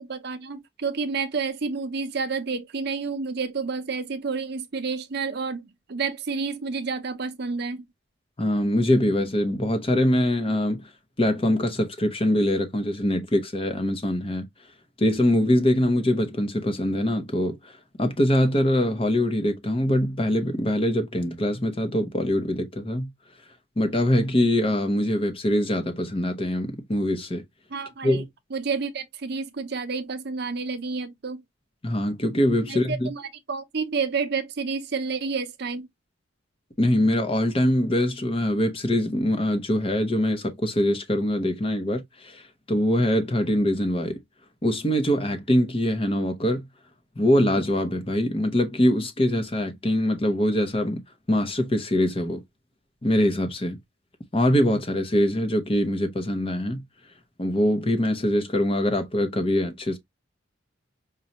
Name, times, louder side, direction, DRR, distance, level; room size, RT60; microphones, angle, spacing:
voice 1, 0.0-7.8 27.7-28.2 28.5-31.4 32.7-35.9, right 4 dB, 50° right, 0.6 m, -30 dB
voice 2, 8.4-10.9 11.2-14.5 15.0-23.1 23.8-27.4 28.0-28.2 31.8-33.1 36.8-44.2 44.6-46.7 47.2-51.0 51.3-52.4 53.0-53.8 54.3-56.8 57.4-60.0, left 1 dB, 25° left, 0.7 m, -23 dB
5.2 x 2.3 x 2.8 m
head